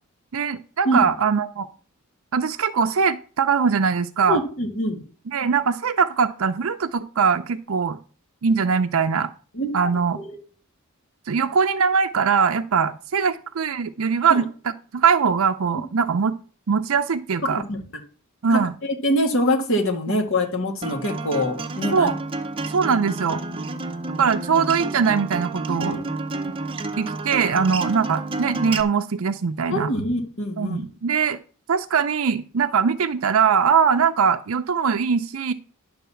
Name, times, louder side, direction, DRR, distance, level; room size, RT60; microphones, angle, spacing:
voice 1, 0.3-1.7 2.3-4.4 5.3-8.0 8.4-9.3 9.7-10.2 11.3-16.4 16.7-17.6 18.4-18.7 21.9-22.1 22.7-23.4 24.2-26.0 27.0-29.9 30.6-31.4 31.7-35.5, right 6 dB, 70° right, 8 dB, 0.5 m, -21 dB
voice 2, 4.3-5.0 9.5-9.7 10.2-10.4 14.3-14.4 17.4-17.8 18.5-22.1 25.7-26.0 29.7-30.8, left 1 dB, 60° left, 2 dB, 1.9 m, -24 dB
Acoustic guitar, 20.8-28.8, right 3 dB, 25° right, 0.6 m, -30 dB
10.5 x 4.0 x 6.9 m, 0.39 s
head